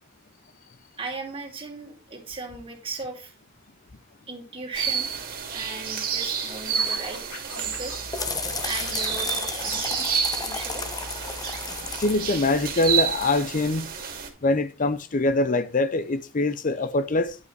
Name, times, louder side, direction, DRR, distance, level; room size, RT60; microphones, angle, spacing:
voice 1, 1.0-3.3 4.3-5.1 5.5-7.2 7.6-7.9 8.6-10.9, right 3 dB, 30° right, 2.9 m, -37 dB
sound 1, 4.7-14.3, right 7 dB, 45° right, 2.5 m, -30 dB
Scratching (performance technique), 6.7-9.5, left 2 dB, 70° left, 3.9 m, -40 dB
sound 2, 7.6-13.2, left 4 dB, 20° left, 1.0 m, -34 dB
voice 2, 12.0-13.9 14.4-17.4, left 2 dB, 40° left, 0.6 m, -23 dB
11.0 x 5.6 x 4.6 m
head